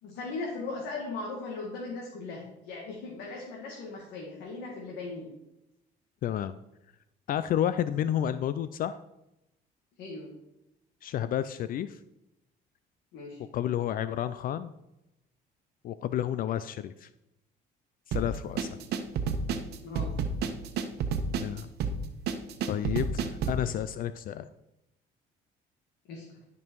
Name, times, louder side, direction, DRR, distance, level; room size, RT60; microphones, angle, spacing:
voice 1, 0.0-5.3 10.0-10.3 13.1-13.4 19.8-20.1 26.1-26.3, left 3 dB, 85° left, -2 dB, 2.1 m, -38 dB
voice 2, 6.2-6.6 7.3-9.0 11.0-12.0 13.5-14.7 15.8-17.1 18.1-18.7 21.3-21.7 22.7-24.5, left 10 dB, 55° left, 14 dB, 0.4 m, -30 dB
sound 1, 18.1-23.6, right 5 dB, 75° right, 1.1 m, -30 dB
12.0 x 5.4 x 4.6 m, 0.89 s
cardioid pair, 110°, 17 cm